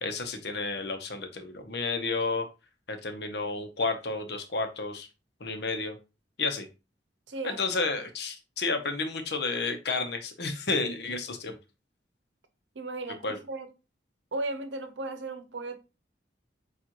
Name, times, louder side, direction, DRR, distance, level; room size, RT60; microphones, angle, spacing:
voice 1, 0.0-2.5 2.9-5.1 5.4-6.0 6.4-6.7 7.4-11.6 13.2-13.4, left 3 dB, 65° left, 0.8 m, -31 dB
voice 2, 7.3-7.6 12.7-13.7 14.3-15.8, right 2 dB, 85° right, 0.8 m, -35 dB
7.1 x 2.4 x 2.9 m
head